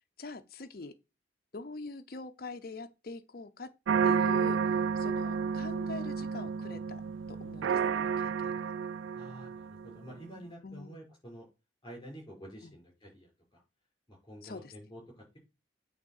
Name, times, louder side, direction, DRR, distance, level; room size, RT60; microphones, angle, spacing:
voice 1, 0.2-0.9 1.5-3.7 4.0-4.6 5.0-7.0 7.3-8.7 10.6-11.0 12.6-12.7 14.4-14.7, left 3 dB, 50° left, 0.6 m, -44 dB
sound 1, 3.9-10.0, right 6 dB, 85° right, 0.3 m, -31 dB
voice 2, 9.1-11.4 11.8-13.6 14.1-15.4, equal, 20° left, 5.0 m, -49 dB
8.7 x 3.6 x 6.4 m
head